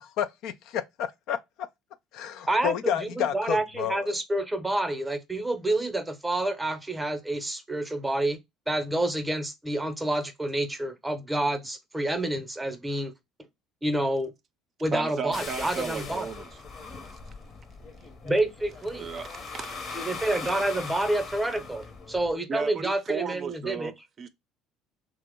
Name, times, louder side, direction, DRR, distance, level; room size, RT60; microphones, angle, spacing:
voice 1, 0.0-1.4 2.1-4.1, left 9 dB, 65° left, 0.4 m, -30 dB
voice 2, 2.5-8.4 8.7-13.1 13.8-14.3 14.8-16.3 18.2-19.1 19.9-23.9, right 1 dB, 10° right, 0.7 m, -28 dB
voice 3, 14.9-16.5 18.9-19.9 22.5-24.3, right 6 dB, 45° right, 0.5 m, -34 dB
sound 1, 15.3-22.3, left 4 dB, 45° left, 0.8 m, -40 dB
2.9 x 2.0 x 3.5 m
supercardioid pair, 85°, 0 cm